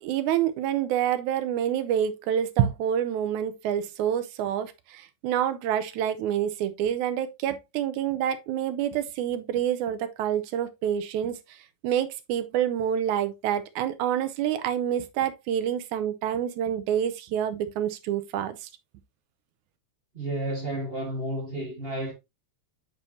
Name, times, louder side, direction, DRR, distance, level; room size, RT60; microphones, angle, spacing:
voice 1, 0.0-11.4 11.8-18.7, right 10 dB, 85° right, 2.1 m, -27 dB
voice 2, 20.1-22.1, right 1 dB, 35° right, 0.9 m, -31 dB
8.9 x 4.5 x 2.7 m
omnidirectional pair, 3.4 m